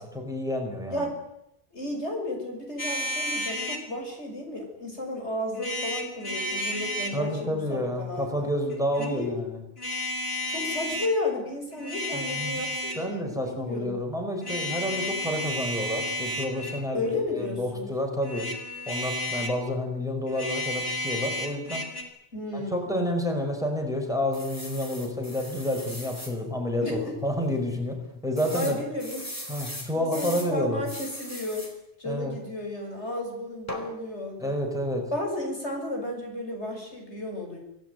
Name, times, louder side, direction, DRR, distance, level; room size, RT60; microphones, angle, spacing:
voice 1, 0.2-1.1 7.1-9.6 12.1-12.6 12.9-18.5 18.9-21.8 22.5-28.8 29.5-30.8 32.0-32.4 34.4-35.1, left 1 dB, 5° right, 3 dB, 5.3 m, -29 dB
voice 2, 1.7-8.5 9.0-9.4 10.5-13.9 16.9-17.9 22.3-23.0 26.8-27.1 28.5-29.3 29.9-31.7 32.0-34.6 35.1-37.6, left 1 dB, 80° left, 2 dB, 6.7 m, -33 dB
sound 1, 2.8-3.9 5.5-7.2 8.7-9.1 9.8-11.1 11.7-13.1 14.4-16.9 18.2-19.6 20.3-22.0, left 1 dB, 60° left, 4.2 m, -32 dB
sound 2, 24.3-26.3 26.9-27.0 27.3-27.4 28.4-30.5 30.8-31.7 33.7-33.9, equal, 15° left, 4.5 m, -39 dB
27.5 x 17.5 x 9.3 m, 0.83 s
omnidirectional pair, 1.1 m